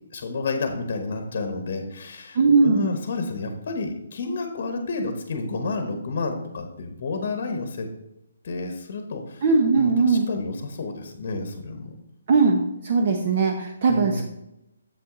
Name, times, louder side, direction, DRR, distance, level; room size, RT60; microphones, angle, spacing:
voice 1, 0.1-7.9 8.4-9.4 9.8-12.0 13.9-14.2, left 3 dB, 50° left, 5 dB, 1.0 m, -30 dB
voice 2, 2.3-2.9 9.4-10.3 12.3-14.2, right 4 dB, 40° right, 3 dB, 0.8 m, -19 dB
7.3 x 5.7 x 3.8 m, 0.87 s
hypercardioid pair, 165°, 0 cm